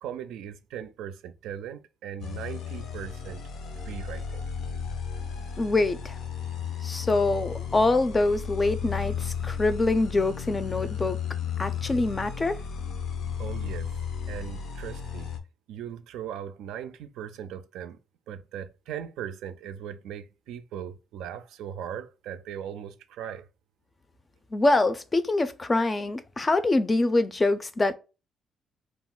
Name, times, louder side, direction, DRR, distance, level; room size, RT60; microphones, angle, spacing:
voice 1, 0.0-3.4 3.8-4.5 13.4-13.9 14.3-15.3 15.7-18.0 18.3-23.5, right 9 dB, 90° right, 0.3 m, -39 dB
sound 1, 2.2-15.4, left 7 dB, 75° left, 0.6 m, -34 dB
voice 2, 5.6-6.1 6.8-11.2 11.6-12.6 24.5-27.9, left 2 dB, 25° left, 0.4 m, -25 dB
2.4 x 2.0 x 3.6 m
cardioid pair, 90°, 0 cm